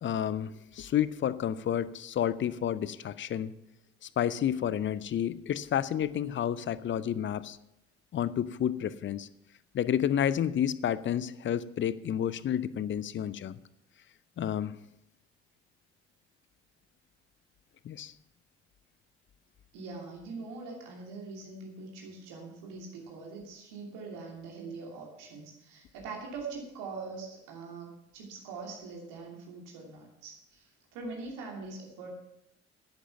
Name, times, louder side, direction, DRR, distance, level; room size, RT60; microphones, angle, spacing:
voice 1, 0.0-3.5 4.0-7.6 8.1-9.3 9.7-13.6 14.4-14.8 17.8-18.1, left 10 dB, 35° left, 17 dB, 0.6 m, -30 dB
voice 2, 19.7-32.1, right 4 dB, 65° right, 0 dB, 2.9 m, -43 dB
10.5 x 10.0 x 5.8 m, 0.82 s
figure-of-eight pair, 50°, 34 cm